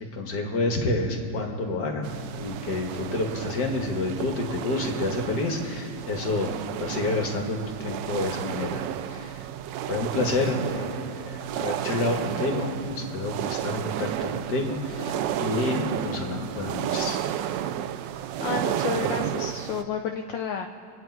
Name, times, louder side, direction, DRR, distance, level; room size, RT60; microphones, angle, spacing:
voice 1, 0.1-2.1 2.3-6.5 6.8-8.8 9.1-9.3 9.9-17.2, left 2 dB, 60° left, 2 dB, 2.1 m, -29 dB
sound 1, 2.0-19.8, right 10 dB, 75° right, 1.2 m, -32 dB
voice 2, 18.4-20.7, left 6 dB, 75° left, 4 dB, 1.4 m, -31 dB
28.0 x 9.6 x 4.6 m, 2.3 s
omnidirectional pair, 2.2 m